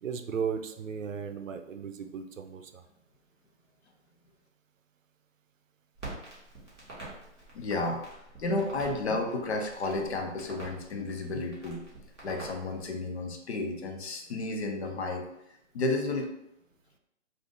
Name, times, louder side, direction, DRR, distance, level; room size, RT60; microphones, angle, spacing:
voice 1, 0.0-2.8, right 6 dB, 85° right, 6 dB, 0.5 m, -35 dB
Crackle, 5.9-12.9, right 2 dB, ahead, 0.5 m, -46 dB
voice 2, 7.5-8.0 8.4-11.8 12.2-15.3 15.7-16.4, left 2 dB, 60° left, 3 dB, 0.7 m, -32 dB
2.6 x 2.5 x 3.6 m, 0.84 s
figure-of-eight pair, 145°, 38 cm